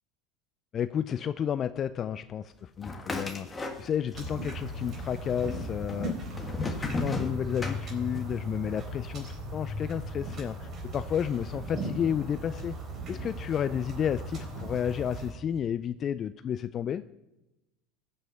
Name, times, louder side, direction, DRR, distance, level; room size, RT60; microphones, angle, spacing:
voice 1, 0.7-3.5 3.8-6.2 6.6-12.7 13.1-17.0, left 9 dB, 40° left, 13 dB, 0.3 m, -31 dB
sound 1, 2.8-4.3 4.5-5.3 5.9-8.4, left 2 dB, 20° left, 1.7 m, -34 dB
sound 2, 4.1-15.3, right 1 dB, 35° right, 3.9 m, -37 dB
15.0 x 5.6 x 8.0 m, 0.98 s
hypercardioid pair, 90°, 0 cm